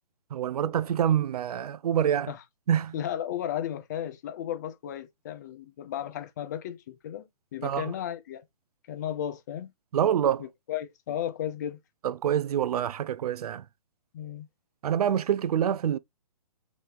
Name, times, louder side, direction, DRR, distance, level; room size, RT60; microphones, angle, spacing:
voice 1, 0.3-2.3 2.7-2.9 7.6-7.9 9.9-10.4 12.0-13.6 14.8-16.0, right 9 dB, 70° right, 0.4 m, -26 dB
voice 2, 2.9-8.4 8.9-9.7 10.4-11.8 14.1-14.5, left 10 dB, 25° left, 0.4 m, -34 dB
3.2 x 3.1 x 3.4 m
hypercardioid pair, 155°, 20 cm